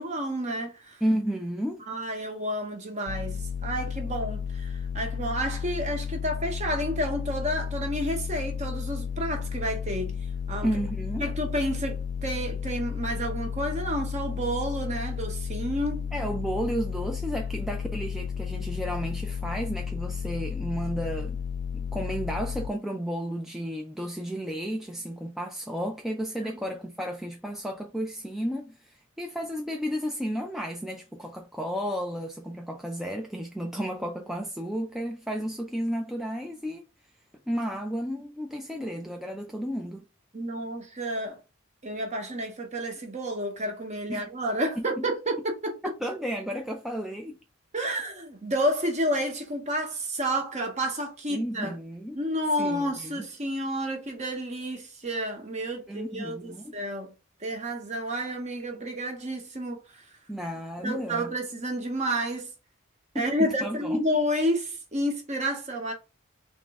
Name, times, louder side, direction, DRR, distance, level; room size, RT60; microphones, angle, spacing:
voice 1, 0.0-1.0 1.9-10.7 11.2-16.1 26.4-26.5 40.3-41.4 41.8-45.8 47.7-51.7 52.1-57.1 57.4-60.0 60.8-62.5 63.1-65.9, equal, 30° right, 1.0 m, -30 dB
voice 2, 1.0-1.8 10.6-11.3 16.1-21.4 21.7-36.9 37.5-40.0 44.1-44.2 44.8-45.0 46.0-47.4 51.3-52.2 52.6-53.2 55.9-56.8 60.3-61.3 63.1-64.0, equal, ahead, 0.4 m, -32 dB
sound 1, 3.1-22.7, left 7 dB, 70° left, 0.3 m, -33 dB
3.7 x 3.1 x 3.5 m
head